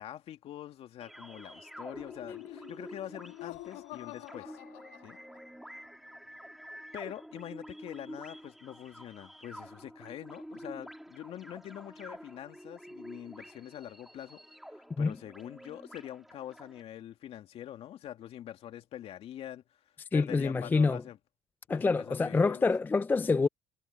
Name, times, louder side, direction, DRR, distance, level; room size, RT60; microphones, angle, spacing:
voice 1, 0.0-4.6 5.0-5.2 6.9-14.4 14.7-19.6 20.1-21.2 21.7-22.7, left 11 dB, 55° left, 2.3 m, -44 dB
sound 1, 1.0-16.8, equal, ahead, 3.5 m, -49 dB
Laughter, 1.9-5.6, left 19 dB, 80° left, 1.9 m, -48 dB
voice 2, 20.1-21.0 21.7-23.5, left 4 dB, 15° left, 0.4 m, -26 dB
supercardioid pair, 105°, 12 cm